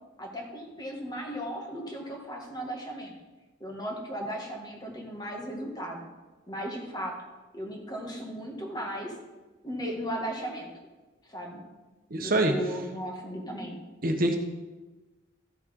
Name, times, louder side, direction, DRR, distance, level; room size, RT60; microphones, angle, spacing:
voice 1, 0.2-3.2 3.6-6.0 6.5-7.2 7.5-9.2 9.6-10.7 11.2-11.6 12.2-13.8, equal, 20° left, 0 dB, 1.9 m, -36 dB
voice 2, 12.1-12.6 14.0-14.4, right 1 dB, 50° right, 3 dB, 1.1 m, -24 dB
14.0 x 6.3 x 5.4 m, 1.2 s
head